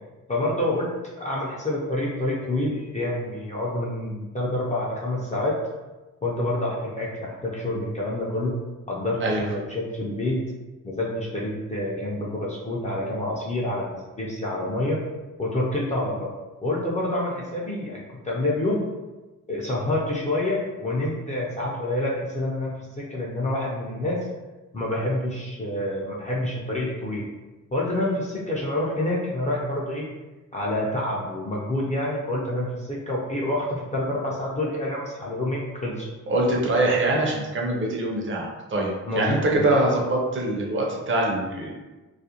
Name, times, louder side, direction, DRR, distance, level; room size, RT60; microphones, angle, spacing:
voice 1, 0.3-5.6 6.2-8.6 8.9-10.4 10.8-15.0 15.4-16.3 16.6-18.8 19.5-24.3 24.7-27.3 27.7-30.1 30.5-36.1 39.1-39.9, left 1 dB, 25° left, -5 dB, 0.4 m, -27 dB
voice 2, 36.3-41.7, right 1 dB, 40° right, -1 dB, 0.5 m, -24 dB
2.4 x 2.1 x 2.8 m, 1.2 s
wide cardioid pair, 130°, 31 cm